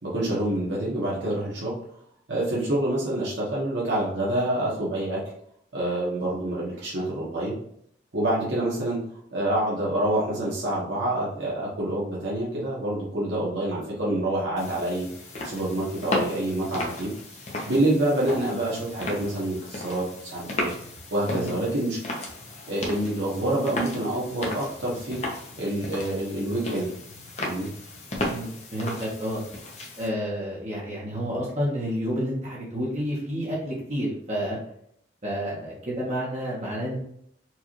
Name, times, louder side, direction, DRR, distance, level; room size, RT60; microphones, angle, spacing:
voice 1, 0.0-1.7 2.3-5.2 5.7-7.6 8.1-9.0 9.3-15.1 15.4-20.7 21.1-22.0 22.7-25.2 25.6-26.9 27.4-27.7, right 1 dB, 85° right, -6 dB, 1.2 m, -27 dB
sound 1, 14.6-30.1, left 1 dB, 40° left, 0.8 m, -35 dB
voice 2, 28.2-29.4 30.0-34.6 35.2-37.0, equal, 40° right, -5 dB, 1.1 m, -30 dB
4.5 x 2.5 x 3.0 m, 0.71 s
head